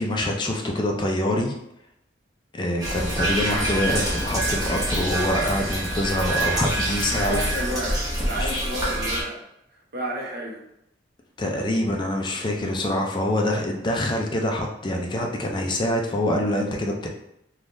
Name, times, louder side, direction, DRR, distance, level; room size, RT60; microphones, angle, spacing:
voice 1, 0.0-1.5 2.5-7.4 8.4-8.6 11.4-17.1, left 1 dB, 25° left, 1 dB, 0.4 m, -25 dB
sound 1, 2.8-9.2, right 1 dB, 20° right, 0.8 m, -26 dB
voice 2, 7.1-9.4 9.9-10.6, right 1 dB, 55° right, -2 dB, 0.8 m, -31 dB
3.3 x 2.3 x 2.5 m, 0.81 s
head